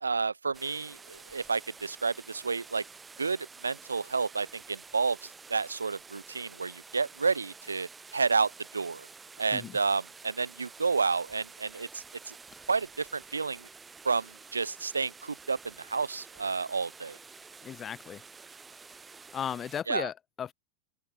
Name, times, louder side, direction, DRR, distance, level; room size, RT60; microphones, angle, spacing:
voice 1, 0.0-2.8 3.2-9.1 9.4-12.3 12.7-13.7 14.0-17.2 19.9-20.1, right 4 dB, 75° right, 0.3 m, -30 dB
sound 1, 0.5-19.8, right 4 dB, 15° right, 1.0 m, -50 dB
voice 2, 17.6-18.2 19.3-20.5, left 8 dB, 25° left, 0.3 m, -36 dB
open air
figure-of-eight pair, 90°, 0 cm